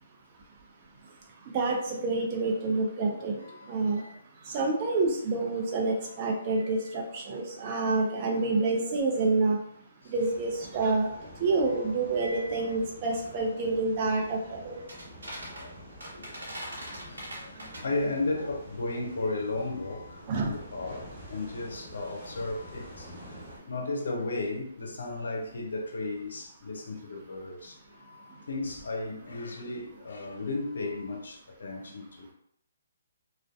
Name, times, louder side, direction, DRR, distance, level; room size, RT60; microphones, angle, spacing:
voice 1, 1.5-3.3 3.7-4.0 4.5-9.6 10.1-11.1 11.4-14.8 20.3-20.6, right 3 dB, 35° right, 0.6 m, -28 dB
voice 2, 3.4-4.2 4.5-4.6 10.0-10.1 12.5-12.7 15.4-23.4 23.7-32.3, left 2 dB, 70° left, 0.5 m, -35 dB
sound 1, 10.1-23.6, equal, 10° right, 1.5 m, -48 dB
sound 2, 10.2-21.9, right 1 dB, 75° right, 1.0 m, -46 dB
2.5 x 2.2 x 2.3 m
hypercardioid pair, 145°, 0 cm